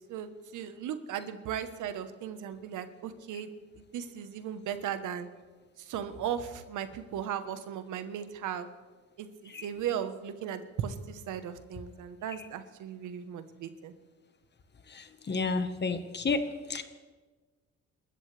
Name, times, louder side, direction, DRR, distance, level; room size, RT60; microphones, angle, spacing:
voice 1, 0.1-3.5 3.8-5.3 5.8-8.7 9.2-13.9, right 9 dB, 85° right, 10 dB, 1.2 m, -37 dB
voice 2, 14.9-16.4 16.7-16.8, left 4 dB, 35° left, 9 dB, 1.4 m, -31 dB
27.5 x 13.5 x 3.4 m, 1.3 s
cardioid pair, 90°, 30 cm